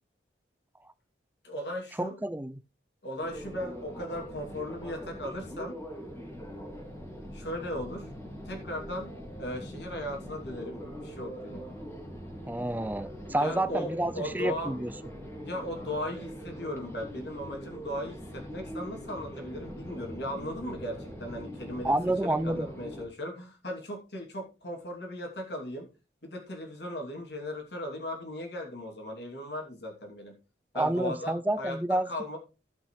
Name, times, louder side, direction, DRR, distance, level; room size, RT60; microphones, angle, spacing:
voice 1, 1.4-2.1 3.0-5.8 7.3-8.1 8.4-9.1 9.4-11.7 13.4-14.7 15.4-25.9 26.2-30.3 30.7-32.4, left 1 dB, 70° left, 2.8 m, -37 dB
voice 2, 2.0-2.6 12.5-14.9 21.8-22.7 30.8-32.1, right 1 dB, 10° right, 0.4 m, -29 dB
sound 1, 3.2-23.1, equal, 15° left, 2.3 m, -42 dB
16.5 x 5.7 x 3.2 m
head